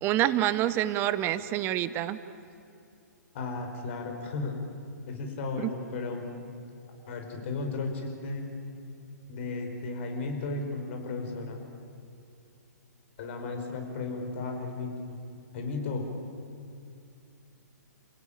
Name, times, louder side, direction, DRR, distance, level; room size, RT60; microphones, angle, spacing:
voice 1, 0.0-2.2 5.6-5.7, right 13 dB, 25° right, 14 dB, 0.9 m, -27 dB
voice 2, 3.3-4.6 5.1-6.3 7.1-8.5 9.3-11.6 13.2-14.9 15.5-16.0, left 3 dB, 45° left, 4 dB, 5.0 m, -34 dB
29.0 x 17.0 x 8.9 m, 2.5 s
figure-of-eight pair, 125°, 9 cm